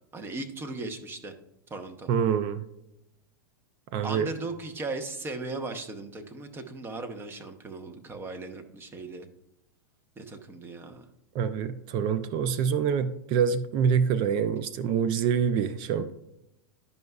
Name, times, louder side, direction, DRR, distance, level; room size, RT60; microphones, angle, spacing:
voice 1, 0.1-1.4 1.7-2.1 4.0-9.3 10.2-11.0, right 3 dB, 20° right, 7 dB, 0.7 m, -37 dB
voice 2, 2.1-2.6 3.9-4.3 11.3-16.1, right 7 dB, 45° right, 14 dB, 0.4 m, -26 dB
10.5 x 5.4 x 2.3 m, 0.86 s
hypercardioid pair, 110°, 12 cm